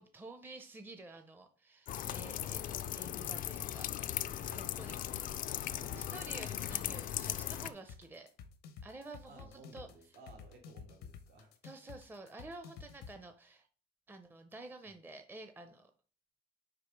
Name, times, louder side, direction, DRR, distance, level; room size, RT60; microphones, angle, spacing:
voice 1, 0.0-2.6 2.9-5.3 5.9-8.3 8.8-9.9 11.6-13.7 14.1-15.9, right 2 dB, 10° right, 7 dB, 0.6 m, -50 dB
sound 1, 1.9-7.7, left 11 dB, 55° left, 0.4 m, -38 dB
voice 2, 4.4-4.7 5.7-6.4 9.2-11.5, right 2 dB, 70° right, 3 dB, 1.6 m, -56 dB
sound 2, 5.1-13.1, left 6 dB, 90° left, 0.9 m, -50 dB
4.9 x 4.9 x 4.6 m, 0.41 s
cardioid pair, 110°, 17 cm